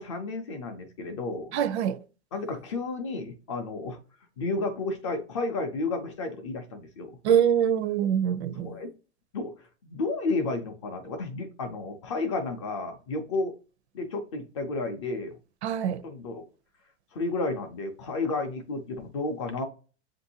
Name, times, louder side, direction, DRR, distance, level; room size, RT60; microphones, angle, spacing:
voice 1, 0.0-1.5 2.3-4.0 4.4-7.2 8.5-8.9 9.3-13.5 13.9-15.4 16.0-16.4 17.1-19.6, left 3 dB, 30° left, 0.4 m, -32 dB
voice 2, 1.5-2.0 7.2-8.7 15.6-16.0, right 9 dB, 70° right, 0.6 m, -24 dB
7.4 x 2.6 x 2.7 m
supercardioid pair, 175°, 34 cm